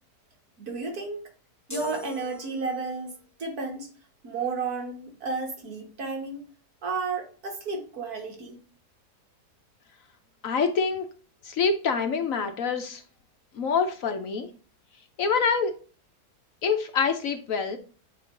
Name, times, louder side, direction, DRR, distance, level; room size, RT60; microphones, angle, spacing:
voice 1, 0.6-1.2 1.7-3.9 4.2-6.4 6.8-8.6, right 4 dB, 65° right, 2 dB, 2.1 m, -32 dB
sound 1, 1.7-3.1, left 4 dB, 25° left, 0.4 m, -41 dB
voice 2, 10.4-11.1 11.4-13.0 13.5-14.5 15.2-15.7 16.6-17.8, left 5 dB, 60° left, 7 dB, 1.1 m, -26 dB
9.1 x 3.1 x 3.8 m, 0.38 s
omnidirectional pair, 1.7 m